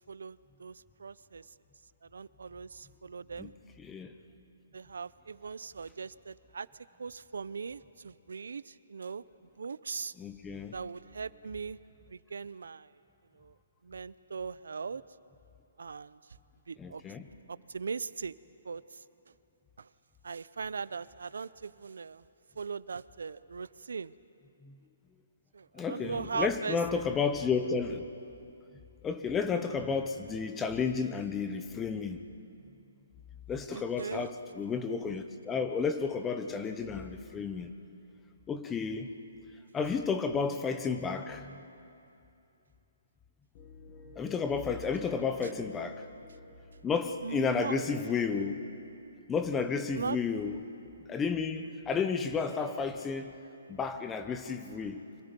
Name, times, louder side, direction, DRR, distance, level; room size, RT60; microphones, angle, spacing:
voice 1, 0.0-1.5 2.1-3.5 4.7-6.7 7.0-9.2 9.6-10.1 10.7-11.8 12.1-12.9 13.3-13.5 13.8-15.0 15.8-16.2 16.7-17.0 17.5-18.3 18.6-19.0 19.8-19.9 20.2-22.2 22.6-24.1 25.5-26.8 33.7-34.3 47.2-47.8 50.0-50.2, right 5 dB, 85° right, 18 dB, 0.6 m, -39 dB
voice 2, 3.8-4.1 10.2-10.7 16.8-17.3 24.6-24.7 25.7-28.1 29.0-32.2 33.5-37.7 38.5-39.1 39.7-41.6 44.2-46.0 46.8-48.6 49.3-50.6 51.1-53.3 53.7-55.0, left 5 dB, 10° left, 9 dB, 0.8 m, -32 dB
sound 1, 43.5-48.9, left 3 dB, 25° left, 1.8 m, -52 dB
29.5 x 25.0 x 5.3 m, 2.7 s
hypercardioid pair, 170°, 0 cm